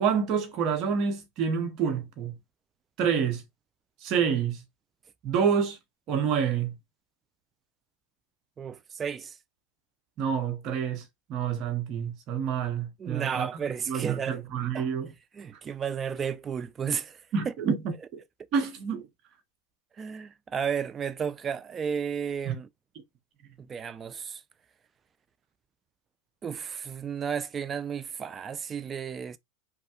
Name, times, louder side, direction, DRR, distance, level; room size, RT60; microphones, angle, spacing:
voice 1, 0.0-2.3 3.0-3.4 4.0-4.6 5.2-5.8 6.1-6.7 10.2-11.0 11.3-13.5 13.9-15.1 17.3-18.2 18.5-19.1 22.5-22.6, right 7 dB, 45° right, 0.8 m, -28 dB
voice 2, 8.6-9.4 13.0-14.4 14.7-14.9 15.3-17.5 20.0-22.7 23.6-24.4 26.4-29.4, right 7 dB, 25° right, 0.4 m, -33 dB
3.1 x 2.1 x 2.9 m
hypercardioid pair, 105°, 0 cm